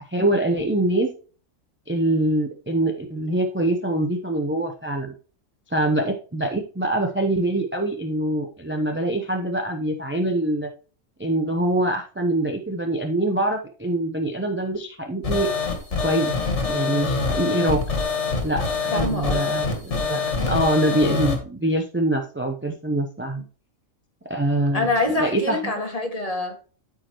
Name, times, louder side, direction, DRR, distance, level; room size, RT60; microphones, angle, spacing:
voice 1, 0.1-1.1 1.9-5.1 5.7-10.7 11.2-15.5 16.0-16.3 16.7-18.0 18.4-20.2 20.5-23.4 24.3-24.9 25.2-25.7, right 1 dB, 15° right, 0.5 m, -24 dB
sound 1, 15.2-21.4, left 4 dB, 60° left, 2.0 m, -25 dB
voice 2, 18.9-19.6 24.7-26.6, left 2 dB, 30° left, 1.8 m, -25 dB
13.0 x 4.8 x 3.0 m
omnidirectional pair, 1.4 m